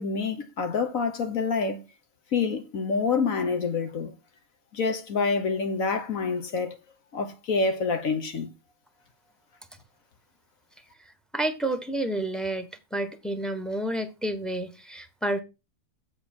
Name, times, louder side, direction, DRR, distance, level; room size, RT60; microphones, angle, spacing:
voice 1, 0.0-1.9 2.3-4.1 4.7-6.8 7.1-8.5, left 4 dB, 65° left, 1.6 m, -27 dB
voice 2, 11.3-15.4, right 1 dB, ahead, 1.0 m, -30 dB
8.0 x 7.3 x 4.3 m
omnidirectional pair, 1.5 m